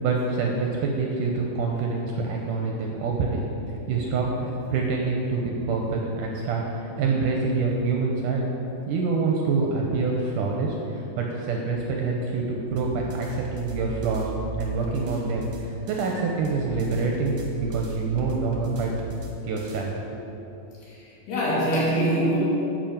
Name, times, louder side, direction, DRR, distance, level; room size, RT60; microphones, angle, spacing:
voice 1, 0.0-3.4 3.9-6.6 7.0-8.5 8.9-14.3 14.6-18.9 19.5-20.2, right 4 dB, 75° right, 0 dB, 2.0 m, -26 dB
sound 1, 12.8-16.1 16.4-19.8, right 1 dB, 60° right, 1.5 m, -36 dB
voice 2, 20.8-22.4, right 1 dB, 85° left, -7 dB, 4.5 m, -24 dB
10.0 x 5.2 x 7.3 m, 2.9 s
omnidirectional pair, 4.4 m